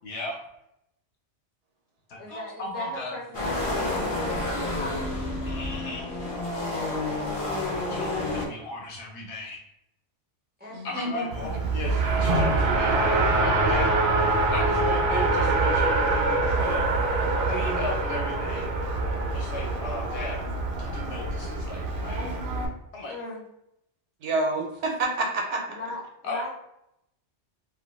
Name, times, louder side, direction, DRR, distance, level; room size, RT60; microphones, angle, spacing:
voice 1, 0.0-0.4 2.1-3.2 5.5-6.3 7.8-9.6 10.8-13.9 14.5-16.9 17.5-18.7 19.3-20.4 20.7-22.4 22.9-23.2 26.2-26.4, left 2 dB, 70° left, 0 dB, 0.9 m, -36 dB
voice 2, 2.2-5.1 6.9-7.4 10.6-11.2 23.1-23.4 25.7-26.5, left 2 dB, 15° right, -5 dB, 0.3 m, -39 dB
sound 1, 3.3-8.4, left 2 dB, 35° left, 0.5 m, -29 dB
voice 3, 10.7-11.8 24.2-25.8, right 2 dB, 80° right, 2 dB, 0.9 m, -29 dB
Race car auto racing, 11.3-22.7, right 2 dB, 60° right, 0.6 m, -25 dB
2.4 x 2.2 x 2.9 m, 0.81 s
omnidirectional pair, 1.2 m